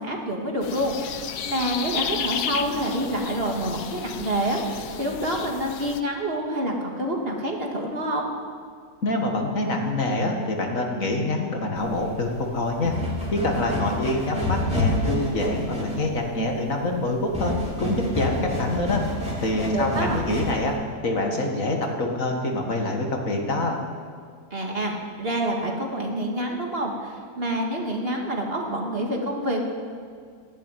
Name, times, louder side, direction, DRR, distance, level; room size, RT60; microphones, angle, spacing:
voice 1, 0.0-8.3 19.7-20.2 24.5-29.6, right 1 dB, 40° right, 0 dB, 2.2 m, -27 dB
sound 1, 0.6-6.0, left 8 dB, 80° left, 1.4 m, -33 dB
voice 2, 9.0-12.9 13.3-17.5 17.8-19.0 19.4-20.8 21.0-23.8, left 2 dB, 60° left, 2 dB, 2.1 m, -25 dB
sound 2, 11.8-20.7, left 1 dB, 5° right, 3.3 m, -29 dB
13.5 x 11.0 x 9.1 m, 2.1 s
omnidirectional pair, 1.7 m